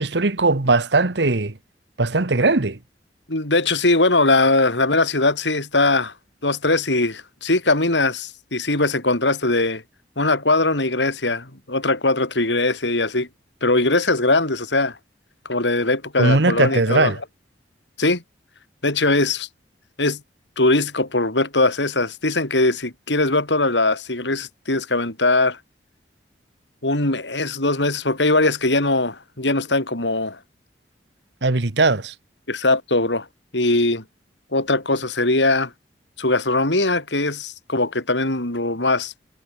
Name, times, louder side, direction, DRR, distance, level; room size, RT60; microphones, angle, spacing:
voice 1, 0.0-1.6 2.0-2.8 16.2-17.2 31.4-32.1, right 3 dB, 75° right, 1.3 m, -19 dB
voice 2, 3.3-6.1 6.4-9.8 10.2-13.3 13.6-15.0 15.5-17.1 18.0-18.2 18.8-19.5 20.0-20.2 20.6-25.6 26.8-30.4 32.5-33.3 33.5-34.0 34.5-35.7 36.2-39.1, left 2 dB, 90° left, 5.3 m, -20 dB
head